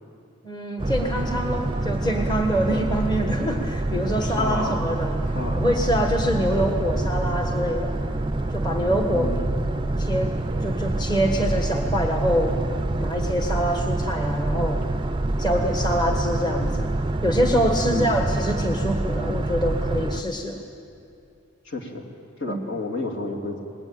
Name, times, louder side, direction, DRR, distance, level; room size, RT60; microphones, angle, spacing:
voice 1, 0.4-5.2 5.6-7.9 8.5-9.3 10.0-10.3 10.6-12.6 13.0-14.8 15.4-16.9 17.2-20.6 22.5-22.6, equal, 20° left, 3 dB, 1.6 m, -25 dB
Boat Water vehicle, 0.8-20.2, right 2 dB, 25° right, 0.6 m, -26 dB
voice 2, 4.1-4.8 5.3-5.6 9.1-9.5 17.9-18.2 21.6-22.1 22.4-23.6, left 2 dB, 60° left, 0 dB, 3.2 m, -31 dB
27.5 x 20.0 x 8.9 m, 2.7 s
head